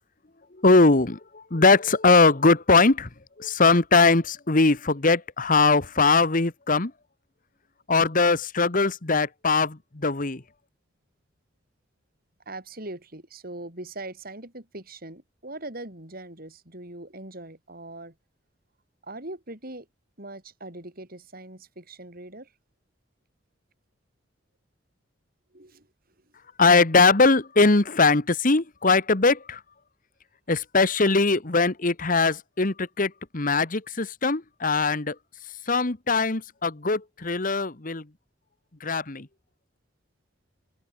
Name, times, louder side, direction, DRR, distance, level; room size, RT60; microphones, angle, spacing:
voice 1, 0.6-3.1 3.4-6.9 7.9-10.4 26.6-29.6 30.5-35.1 35.7-38.0 38.8-39.3, left 3 dB, 45° left, 1.4 m, -21 dB
voice 2, 12.5-18.1 19.0-19.9 20.2-22.5 25.5-25.9, right 2 dB, 50° right, 6.0 m, -41 dB
head